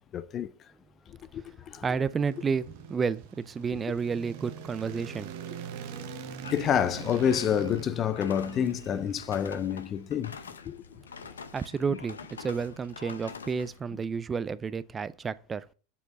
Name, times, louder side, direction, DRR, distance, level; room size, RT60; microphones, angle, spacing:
voice 1, 0.1-0.5 1.3-1.8 6.5-10.4 10.6-10.8, left 9 dB, 35° left, 0.5 m, -28 dB
sound 1, 1.5-9.9, right 7 dB, 65° right, 0.9 m, -43 dB
voice 2, 1.8-5.6 11.5-15.7, right 5 dB, 25° right, 0.4 m, -31 dB
sound 2, 6.4-13.8, left 5 dB, 90° left, 0.7 m, -46 dB
7.3 x 4.5 x 5.3 m
hypercardioid pair, 95°, 0 cm